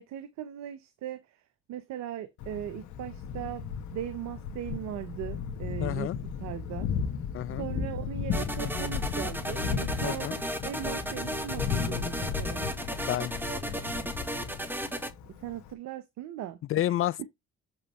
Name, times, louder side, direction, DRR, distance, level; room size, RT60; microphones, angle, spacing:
voice 1, 0.0-1.4 1.7-3.6 3.9-6.1 6.4-6.9 7.6-10.3 10.6-12.7 13.7-14.1 15.3-17.0, right 11 dB, 65° right, 1.1 m, -39 dB
Thunder, 2.4-15.7, left 6 dB, 70° left, 1.6 m, -35 dB
voice 2, 5.8-6.2 7.3-7.7 10.0-10.4 13.0-13.3 16.7-17.3, left 13 dB, 45° left, 0.5 m, -30 dB
sound 1, 8.3-15.1, right 1 dB, 5° right, 1.6 m, -35 dB
7.8 x 6.5 x 3.3 m
hypercardioid pair, 60°, 30 cm